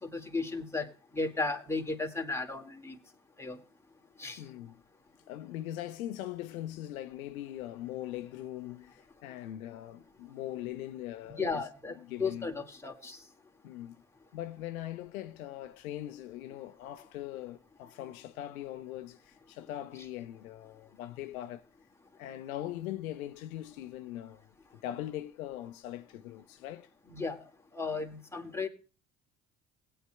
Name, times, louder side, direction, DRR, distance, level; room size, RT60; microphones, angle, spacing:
voice 1, 0.0-3.0 3.4-3.6 4.2-4.4 11.4-13.2 27.1-28.7, left 3 dB, 5° left, 1.8 m, -35 dB
voice 2, 4.0-4.8 5.3-12.5 13.6-14.0 14.3-21.7 22.2-26.9, left 13 dB, 85° left, 0.6 m, -41 dB
19.5 x 8.9 x 2.2 m
hypercardioid pair, 60°, 41 cm